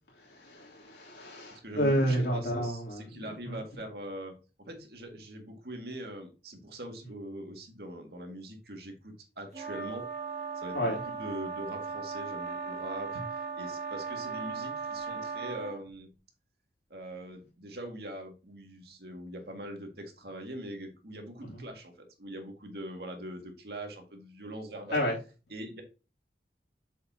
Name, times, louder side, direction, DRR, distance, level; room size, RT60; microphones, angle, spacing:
voice 1, 0.1-3.8 10.7-11.0 21.4-21.6 24.9-25.2, equal, 80° left, 3.1 m, -31 dB
voice 2, 1.6-10.1 10.6-16.1 16.9-25.1 25.5-25.8, right 1 dB, 65° right, 2.0 m, -42 dB
sound 1, 9.5-15.8, right 5 dB, 40° right, 1.7 m, -37 dB
7.3 x 7.2 x 2.8 m
head